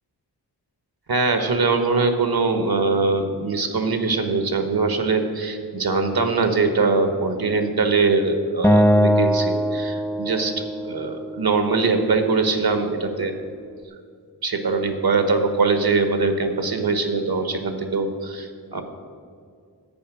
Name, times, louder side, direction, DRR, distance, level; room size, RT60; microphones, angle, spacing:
voice 1, 1.1-13.4 14.4-18.8, right 4 dB, 55° right, 7 dB, 1.3 m, -22 dB
Acoustic guitar, 8.6-11.9, equal, 5° left, 0.4 m, -21 dB
11.5 x 8.5 x 6.2 m, 2.2 s
wide cardioid pair, 90°, 43 cm